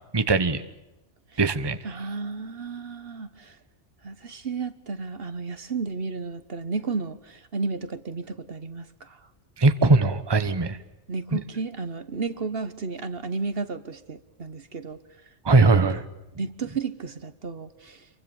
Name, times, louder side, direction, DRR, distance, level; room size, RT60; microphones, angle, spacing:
voice 1, 0.1-0.6 1.4-1.8 9.6-10.8 11.3-11.4 15.4-16.0, right 3 dB, 20° right, 11 dB, 1.1 m, -20 dB
voice 2, 1.8-3.6 4.0-9.3 11.1-15.0 15.9-16.0 16.4-18.1, right 4 dB, 55° right, 12 dB, 1.3 m, -33 dB
28.0 x 24.0 x 7.0 m, 0.97 s
omnidirectional pair, 1.2 m